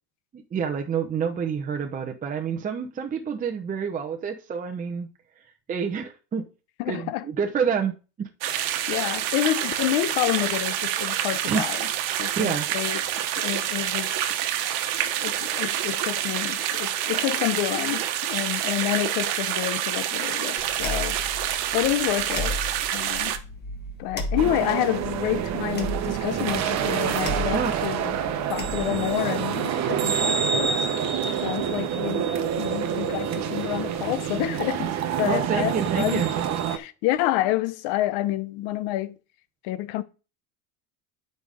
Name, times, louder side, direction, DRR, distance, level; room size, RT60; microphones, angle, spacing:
voice 1, 0.3-5.1 5.7-6.5 6.9-8.3 11.5-11.7 12.4-12.7 27.5-27.8 35.3-36.3, right 6 dB, 20° right, 0.8 m, -28 dB
voice 2, 6.8-7.2 8.6-11.8 12.2-13.0 13.4-14.2 15.2-21.2 21.7-22.6 22.9-23.4 24.0-28.2 28.5-32.3 32.6-36.2 36.7-39.2 39.6-40.0, left 15 dB, 75° left, 1.0 m, -28 dB
sound 1, 8.4-23.4, right 11 dB, 70° right, 1.1 m, -27 dB
sound 2, 20.6-29.2, left 1 dB, 25° left, 1.4 m, -35 dB
sound 3, 24.4-36.8, right 8 dB, 45° right, 1.0 m, -27 dB
8.6 x 5.3 x 5.0 m
cardioid pair, 150°, 39 cm